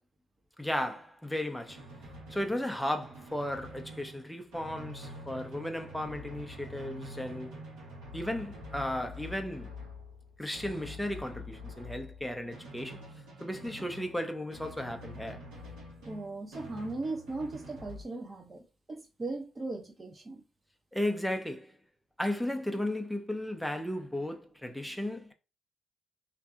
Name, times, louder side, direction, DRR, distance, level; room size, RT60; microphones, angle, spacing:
voice 1, 0.6-1.8 2.3-7.6 8.1-9.7 10.4-13.0 13.4-15.4 20.9-21.7 22.2-25.3, left 1 dB, 5° left, 0.5 m, -35 dB
Drum, 1.7-18.0, left 1 dB, 90° right, 1.2 m, -46 dB
voice 2, 16.1-18.6 18.9-20.4, right 2 dB, 35° right, 0.8 m, -38 dB
2.7 x 2.5 x 2.3 m
supercardioid pair, 60°, 0 cm